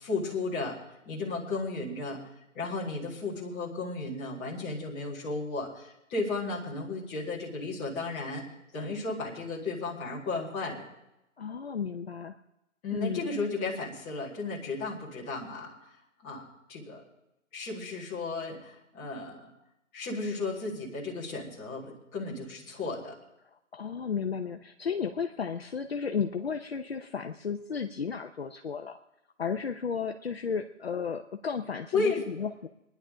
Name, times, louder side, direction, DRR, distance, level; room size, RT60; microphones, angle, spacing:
voice 1, 0.0-2.2 2.5-8.4 8.7-10.9 12.8-17.0 17.5-19.5 19.9-23.2 31.9-32.2, left 3 dB, 10° left, -6 dB, 1.9 m, -34 dB
voice 2, 11.4-12.4 12.9-13.3 23.7-29.0 29.4-32.7, left 6 dB, 50° left, 5 dB, 0.7 m, -33 dB
23.5 x 10.5 x 3.8 m, 0.88 s
hypercardioid pair, 165°, 40 cm